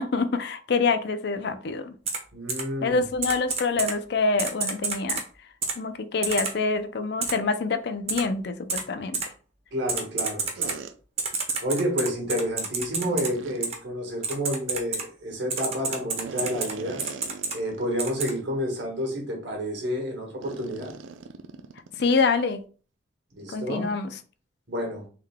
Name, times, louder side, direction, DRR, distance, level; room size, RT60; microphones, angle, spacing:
voice 1, 0.0-1.9 2.8-5.2 5.8-9.2 22.0-22.6 23.5-24.1, left 4 dB, 55° left, 0.4 m, -26 dB
Typing, 2.1-2.2 2.5-2.6 3.2-3.9 4.4-5.2 5.6-5.7 6.2-6.5 7.2-7.3 8.1-8.2 8.7-8.8 9.1-9.2 9.9-10.7 11.2-13.3 13.6-13.8 14.2-15.0 15.5-16.7 17.0-17.5 18.0-18.3, right 4 dB, 30° right, 0.8 m, -28 dB
voice 2, 2.3-3.0 9.7-10.7 11.6-17.0 17.5-20.9 23.4-23.9 24.7-25.1, equal, 60° right, 1.5 m, -30 dB
sound 1, 10.6-10.9 13.0-13.7 16.2-17.9 18.2-18.4 19.0-19.1 20.4-22.2, right 4 dB, 80° right, 0.4 m, -40 dB
3.7 x 3.2 x 3.5 m
head